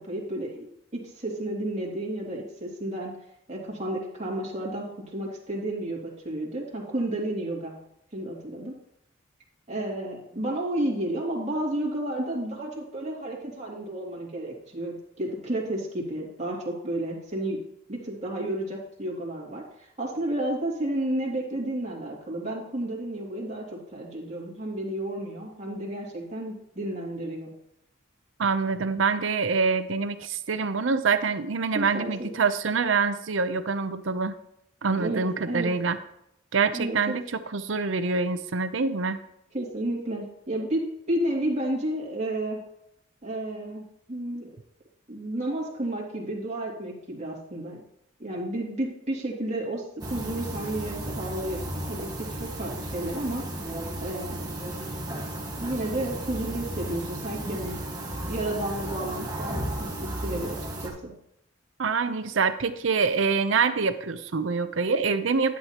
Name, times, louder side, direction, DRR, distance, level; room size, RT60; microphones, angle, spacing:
voice 1, 0.1-3.1 3.5-7.8 8.1-8.7 9.7-17.6 17.9-27.5 31.7-32.3 35.0-35.7 36.7-37.0 39.5-42.6 43.2-44.5 45.1-47.8 48.2-53.4 54.0-54.5 55.6-57.8 58.3-61.1, right 1 dB, 35° right, -3 dB, 2.5 m, -32 dB
voice 2, 28.4-34.3 34.8-36.0 36.5-39.2 61.8-65.6, right 4 dB, 70° right, 11 dB, 0.6 m, -25 dB
sound 1, 50.0-60.9, right 1 dB, 20° right, 1.5 m, -34 dB
11.0 x 9.5 x 2.9 m, 0.79 s
head